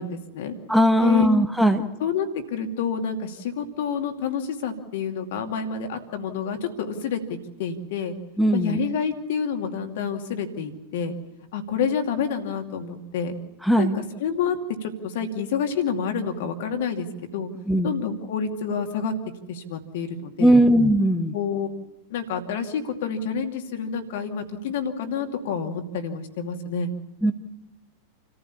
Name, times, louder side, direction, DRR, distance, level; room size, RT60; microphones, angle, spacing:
voice 1, 0.0-0.5 1.0-1.3 2.0-8.1 8.5-11.1 11.5-13.3 13.8-17.5 17.8-19.1 19.5-20.6 21.3-21.7 22.1-26.9, left 6 dB, 55° left, 5 dB, 2.5 m, -28 dB
voice 2, 0.7-1.9 8.4-8.8 13.7-14.0 17.7-17.9 20.4-21.3 27.2-27.3, equal, ahead, 5 dB, 1.6 m, -18 dB
28.5 x 15.0 x 7.1 m, 0.98 s
figure-of-eight pair, 90°, 0 cm